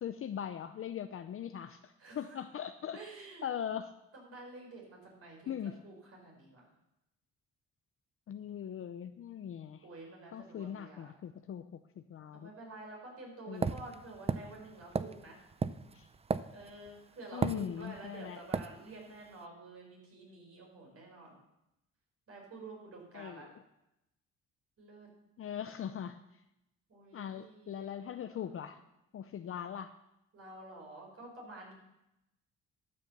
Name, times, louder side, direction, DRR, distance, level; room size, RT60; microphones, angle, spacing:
voice 1, 0.0-3.0 3.4-3.9 5.5-5.8 8.3-9.9 10.3-11.8 12.1-12.5 13.5-13.7 15.9-16.1 17.3-18.4 23.1-23.5 25.4-26.4 27.1-28.8 29.1-29.9, left 9 dB, 45° left, 9 dB, 0.6 m, -40 dB
voice 2, 2.0-2.4 2.9-3.5 4.2-5.6 5.8-6.7 8.5-9.0 9.8-11.1 12.3-15.4 16.5-21.4 22.3-23.5 24.8-25.1 26.9-27.9 28.2-28.7 30.3-31.7, right 2 dB, 50° right, -1 dB, 5.2 m, -50 dB
sound 1, 13.6-16.9 17.4-18.1 18.5-18.7, right 5 dB, 20° right, 0.4 m, -34 dB
12.0 x 6.8 x 6.8 m, 0.88 s
cardioid pair, 90°, 30 cm